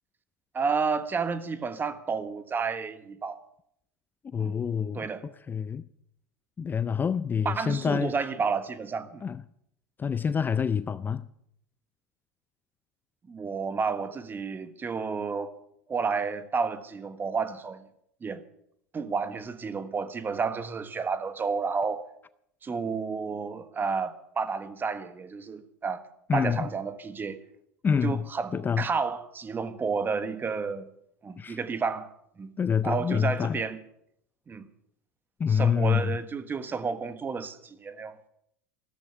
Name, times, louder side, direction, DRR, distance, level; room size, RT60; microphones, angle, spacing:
voice 1, 0.5-3.4 4.4-4.5 4.9-5.2 7.4-9.2 13.3-15.6 15.9-17.8 18.2-18.4 18.9-22.0 22.6-26.0 26.3-27.4 28.0-30.9 31.2-32.1 32.4-32.5 32.8-33.8 34.5-34.7 35.5-38.2, right 5 dB, 25° right, 1.4 m, -31 dB
voice 2, 4.2-5.8 6.6-8.1 9.2-9.4 10.0-11.2 26.3-26.7 27.8-28.2 28.5-28.9 31.4-31.6 32.6-33.6 35.4-36.2, left 7 dB, 25° left, 0.5 m, -27 dB
14.5 x 13.5 x 6.9 m
hypercardioid pair, 85°, 8 cm